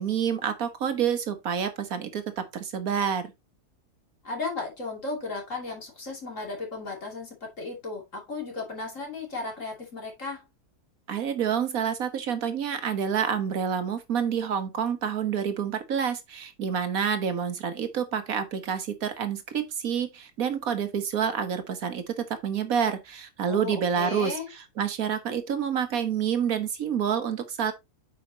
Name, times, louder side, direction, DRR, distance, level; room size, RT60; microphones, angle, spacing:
voice 1, 0.0-3.3 11.1-22.1 22.4-27.7, right 7 dB, 65° right, 1.6 m, -28 dB
voice 2, 4.2-10.4 23.5-24.5, left 3 dB, 55° left, 3.0 m, -35 dB
8.7 x 5.6 x 2.9 m
omnidirectional pair, 1.6 m